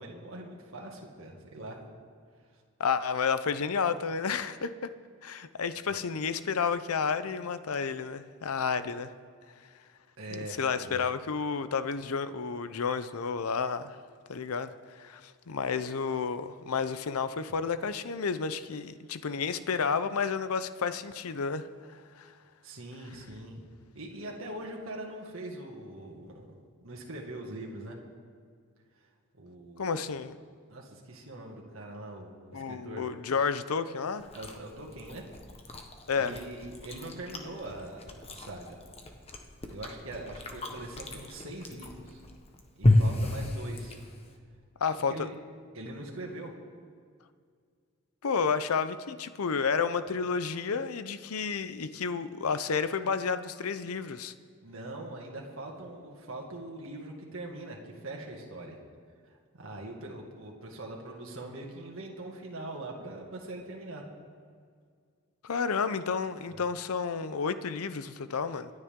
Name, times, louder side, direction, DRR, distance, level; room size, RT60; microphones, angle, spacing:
voice 1, 0.0-1.8 2.5-2.6 5.9-6.0 10.2-11.0 22.6-23.6 23.9-26.6 26.8-28.0 29.3-30.0 30.7-33.0 34.3-35.3 36.1-38.8 39.7-42.2 42.8-44.0 44.9-45.3 45.7-46.5 54.6-58.8 59.2-64.0 66.5-66.6, right 1 dB, 65° right, -1 dB, 2.0 m, -42 dB
voice 2, 2.8-4.7 5.2-9.1 10.3-14.0 14.3-22.3 29.8-30.4 32.5-34.3 36.1-36.3 44.8-45.3 48.2-54.3 65.4-68.7, left 5 dB, 85° left, 12 dB, 0.6 m, -31 dB
Chewing mastication, 34.2-44.4, left 2 dB, 30° left, 1.1 m, -32 dB
26.0 x 9.8 x 3.7 m, 2.1 s
head